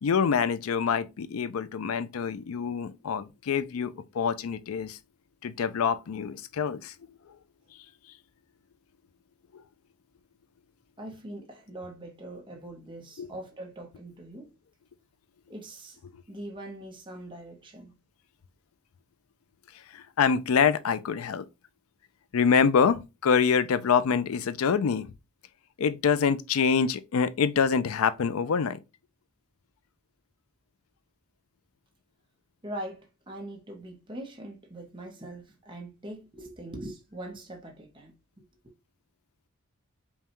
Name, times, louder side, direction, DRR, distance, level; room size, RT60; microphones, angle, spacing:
voice 1, 0.0-5.0 5.4-6.9 7.3-7.4 9.5-9.6 13.2-13.3 19.9-21.5 22.3-25.1 25.8-28.8, left 6 dB, 75° left, 0.4 m, -26 dB
voice 2, 11.0-14.5 15.5-16.0 16.3-18.0 32.6-38.1, right 1 dB, 20° right, 0.8 m, -42 dB
5.4 x 2.3 x 2.9 m
head